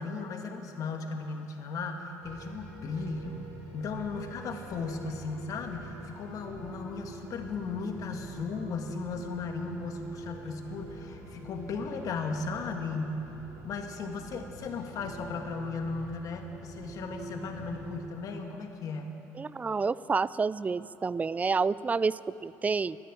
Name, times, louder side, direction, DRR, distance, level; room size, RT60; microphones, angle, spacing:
voice 1, 0.0-3.5 3.7-13.3 13.6-19.2, left 4 dB, 60° left, 4 dB, 1.6 m, -36 dB
sound 1, 2.2-18.0, right 2 dB, 65° right, 3.8 m, -46 dB
voice 2, 19.4-23.0, right 4 dB, 20° right, 19 dB, 0.3 m, -29 dB
13.0 x 10.0 x 8.7 m, 3.0 s
supercardioid pair, 80°, 7 cm